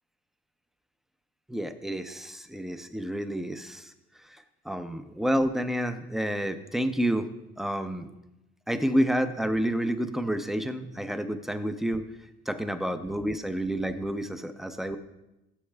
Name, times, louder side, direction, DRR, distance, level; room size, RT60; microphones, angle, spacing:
voice 1, 1.5-3.9 4.2-7.3 7.6-8.1 8.7-12.0 12.5-15.0, equal, ahead, 9 dB, 0.6 m, -29 dB
13.0 x 7.7 x 2.3 m, 0.93 s
cardioid pair, 90°, 21 cm